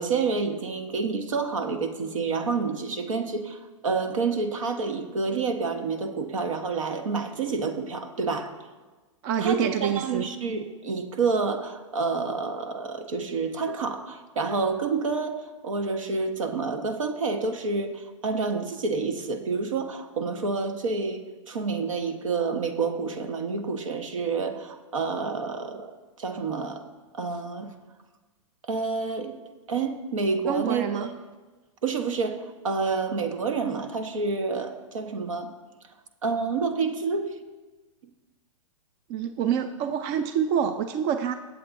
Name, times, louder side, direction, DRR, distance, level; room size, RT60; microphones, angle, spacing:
voice 1, 0.0-8.5 9.4-25.9 26.2-26.8 27.1-27.7 28.6-29.3 29.7-31.1 31.8-35.5 36.2-37.3, right 4 dB, 80° right, 6 dB, 1.3 m, -28 dB
voice 2, 9.2-10.3 30.5-31.1 39.1-41.3, right 8 dB, 45° right, 9 dB, 0.6 m, -26 dB
20.0 x 7.7 x 2.7 m, 1.2 s
hypercardioid pair, 120°, 17 cm